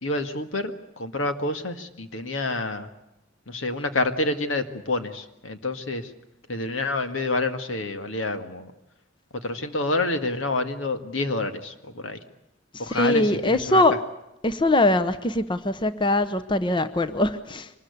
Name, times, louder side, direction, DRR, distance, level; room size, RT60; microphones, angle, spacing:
voice 1, 0.0-2.9 3.5-6.1 6.5-8.7 9.3-12.2 12.8-14.0, left 2 dB, 85° left, 8 dB, 1.9 m, -28 dB
voice 2, 12.8-14.0 14.4-17.7, left 2 dB, 25° left, 12 dB, 0.8 m, -22 dB
24.5 x 20.5 x 8.3 m, 0.86 s
head